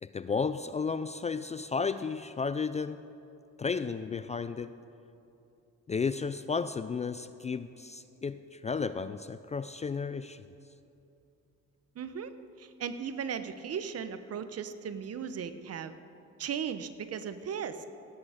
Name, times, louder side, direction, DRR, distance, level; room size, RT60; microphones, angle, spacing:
voice 1, 0.0-3.1 3.6-4.7 5.9-10.4, left 5 dB, 25° left, 12 dB, 0.3 m, -33 dB
voice 2, 11.9-16.0 16.4-17.9, right 7 dB, 55° right, 11 dB, 0.8 m, -37 dB
18.0 x 8.5 x 5.0 m, 2.7 s
cardioid pair, 90°, 30 cm